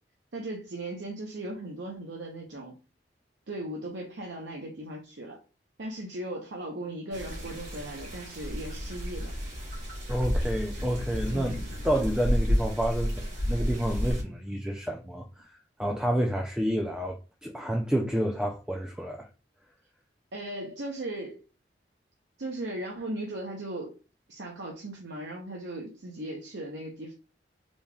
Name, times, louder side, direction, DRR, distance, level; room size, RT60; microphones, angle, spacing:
voice 1, 0.3-2.8 3.5-5.4 5.8-9.3 11.3-11.6 20.3-21.4 22.4-24.0 24.3-27.1, right 1 dB, 85° right, 0.8 m, -37 dB
sound 1, 7.1-14.2, equal, 65° right, 2.2 m, -31 dB
voice 2, 10.1-11.5 11.8-19.3, equal, 5° right, 0.3 m, -29 dB
4.1 x 3.4 x 2.3 m
head